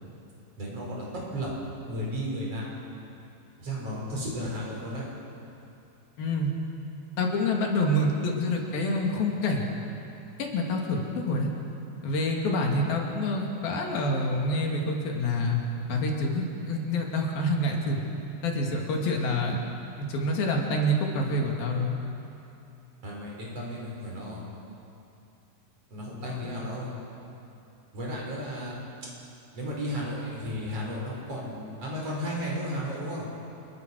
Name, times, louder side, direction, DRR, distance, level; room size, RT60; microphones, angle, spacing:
voice 1, 0.6-1.5 1.8-2.7 3.6-5.0 23.0-24.4 25.9-27.0 27.9-28.8 29.5-33.3, equal, 40° right, -4 dB, 6.6 m, -34 dB
voice 2, 6.2-6.6 7.2-9.7 10.4-11.5 12.0-15.6 15.9-18.0 18.4-19.6 20.0-22.0 26.3-26.5, left 1 dB, 80° left, 0 dB, 4.3 m, -27 dB
28.0 x 21.5 x 6.4 m, 2.8 s
omnidirectional pair, 4.2 m